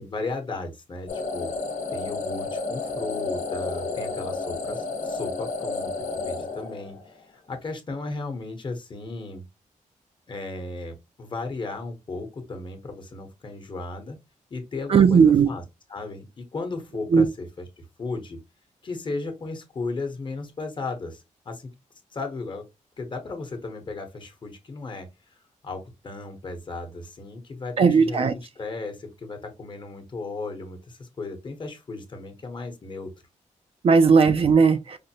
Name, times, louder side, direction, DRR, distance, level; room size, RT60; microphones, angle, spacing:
voice 1, 0.0-1.5 1.9-5.9 6.2-9.4 10.3-14.2 14.5-15.6 15.9-18.4 18.8-21.7 22.1-22.6 23.0-25.1 25.6-33.1, left 3 dB, 35° left, 0.9 m, -35 dB
sound 1, 1.1-7.2, left 3 dB, 65° left, 0.9 m, -31 dB
voice 2, 14.9-15.5 17.1-17.3 27.8-28.3 33.8-35.0, right 5 dB, 45° right, 0.4 m, -17 dB
5.0 x 2.1 x 2.7 m
wide cardioid pair, 125°, 13 cm